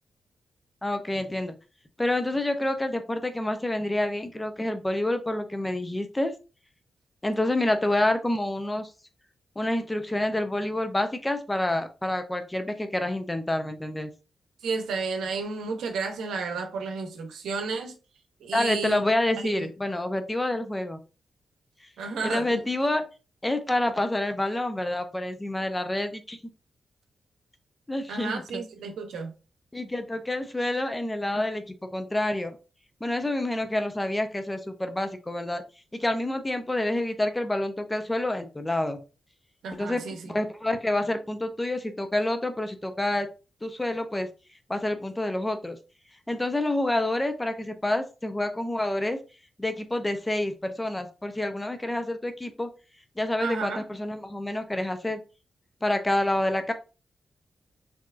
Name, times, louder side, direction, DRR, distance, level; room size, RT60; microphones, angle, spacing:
voice 1, 0.8-1.5 2.0-6.3 7.2-8.9 9.6-14.1 18.5-21.0 22.2-23.0 23.4-26.4 27.9-28.6 29.7-31.6 31.9-32.6 33.0-35.6 35.9-39.0 39.7-43.3 43.6-44.3 44.7-45.8 46.3-49.2 49.6-52.7 53.2-55.2 55.8-56.7, left 1 dB, 20° left, 0.7 m, -28 dB
voice 2, 14.6-18.0 18.4-19.0 19.4-19.7 22.0-22.6 28.1-29.3 39.6-40.3 53.4-53.8, right 4 dB, 85° right, 0.7 m, -32 dB
4.4 x 2.9 x 2.5 m
cardioid pair, 55°, 0 cm